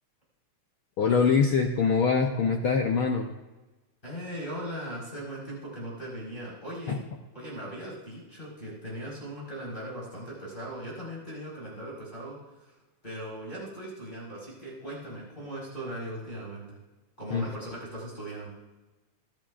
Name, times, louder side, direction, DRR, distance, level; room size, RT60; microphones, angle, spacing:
voice 1, 1.0-3.3 6.9-7.0 17.3-17.5, left 5 dB, 75° left, 2 dB, 1.2 m, -24 dB
voice 2, 4.0-7.0 7.3-12.7 13.0-16.8 17.2-18.5, right 1 dB, 15° left, -5 dB, 4.7 m, -39 dB
24.0 x 10.5 x 2.5 m, 1.1 s
omnidirectional pair, 3.4 m